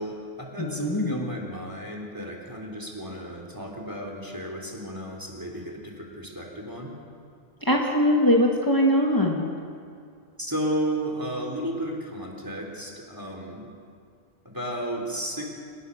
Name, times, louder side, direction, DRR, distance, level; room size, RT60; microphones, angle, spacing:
voice 1, 0.0-6.9 10.4-13.7 14.4-15.5, right 1 dB, 20° right, 0 dB, 3.6 m, -33 dB
voice 2, 0.6-1.3 7.6-9.4, equal, 20° left, -1 dB, 2.1 m, -22 dB
28.0 x 18.0 x 6.6 m, 2.2 s
omnidirectional pair, 1.1 m